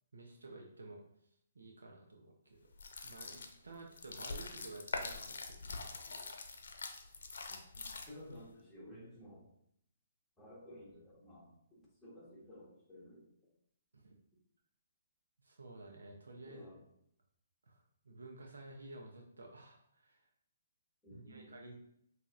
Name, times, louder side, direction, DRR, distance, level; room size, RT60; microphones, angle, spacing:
voice 1, 0.1-1.0 1.5-2.7 3.0-6.3 13.9-14.0 15.4-16.7 17.7-17.8 18.0-20.2 21.1-21.7, right 2 dB, 90° right, 1 dB, 0.7 m, -52 dB
sound 1, 2.7-8.4, left 3 dB, 75° left, 0.7 m, -44 dB
voice 2, 7.5-9.4 10.4-11.5 12.0-13.2 16.5-16.8 21.0-21.5, equal, ahead, -8 dB, 1.4 m, -54 dB
5.7 x 2.8 x 2.5 m, 0.73 s
hypercardioid pair, 145°, 0 cm